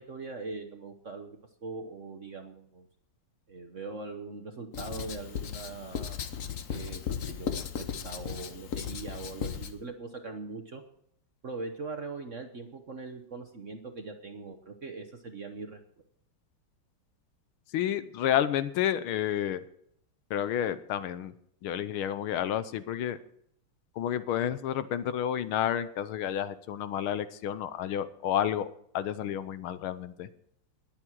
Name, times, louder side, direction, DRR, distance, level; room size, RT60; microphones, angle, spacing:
voice 1, 0.0-2.9 3.5-6.2 6.7-10.8 11.4-15.8, right 3 dB, 50° right, 6 dB, 1.0 m, -41 dB
Writing, 4.7-9.7, left 7 dB, 50° left, 1.0 m, -36 dB
voice 2, 17.7-19.6 20.3-21.3 21.6-23.2 24.0-28.7 28.9-30.3, left 10 dB, 80° left, 14 dB, 1.6 m, -30 dB
21.0 x 7.4 x 4.6 m, 0.68 s
omnidirectional pair, 2.4 m